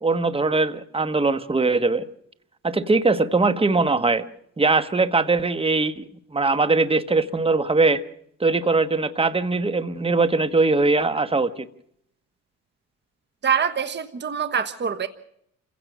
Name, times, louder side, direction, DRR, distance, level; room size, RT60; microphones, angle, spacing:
voice 1, 0.0-2.0 2.6-4.2 4.6-6.0 6.3-8.0 8.4-11.7, right 3 dB, 20° right, 11 dB, 1.4 m, -21 dB
voice 2, 13.4-15.1, right 7 dB, 35° right, 10 dB, 1.3 m, -24 dB
28.0 x 16.0 x 6.2 m, 0.72 s
cardioid pair, 90°, 30 cm